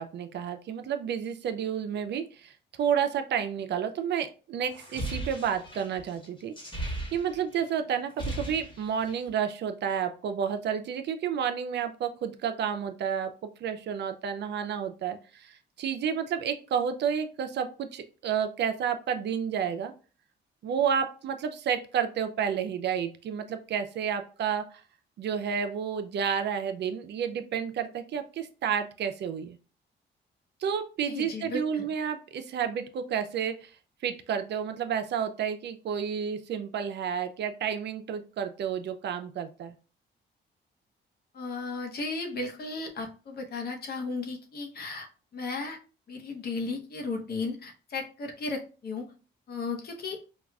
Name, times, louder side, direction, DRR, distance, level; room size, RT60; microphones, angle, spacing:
voice 1, 0.0-2.5 2.8-13.3 13.6-19.9 20.6-24.8 25.2-29.6 30.6-33.7 34.0-39.7, right 8 dB, 60° right, 8 dB, 0.5 m, -31 dB
sound 1, 4.7-7.6 7.9-9.3, right 1 dB, 25° left, 1.3 m, -37 dB
voice 2, 31.0-31.8 41.3-45.1 45.3-45.8 46.1-49.1 49.5-50.2, left 3 dB, 50° left, 3 dB, 0.9 m, -35 dB
4.7 x 2.3 x 2.3 m, 0.36 s
cardioid pair, 90°, 20 cm